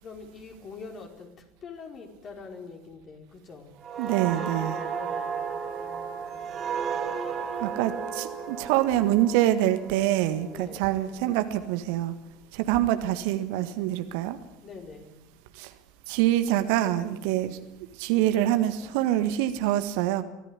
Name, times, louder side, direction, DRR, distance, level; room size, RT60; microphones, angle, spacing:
voice 1, 0.0-3.7 4.6-6.8 10.4-10.9 14.5-15.2 18.1-19.0, left 4 dB, 35° left, 3 dB, 4.8 m, -45 dB
sound 1, 3.8-11.3 11.7-11.9, right 6 dB, 35° right, 3.4 m, -34 dB
voice 2, 4.0-4.8 7.6-12.1 12.5-14.4 15.6-15.7 16.1-17.6 18.0-20.2, right 13 dB, 55° right, 10 dB, 1.7 m, -25 dB
24.5 x 17.0 x 9.9 m, 0.87 s
figure-of-eight pair, 70°, 0 cm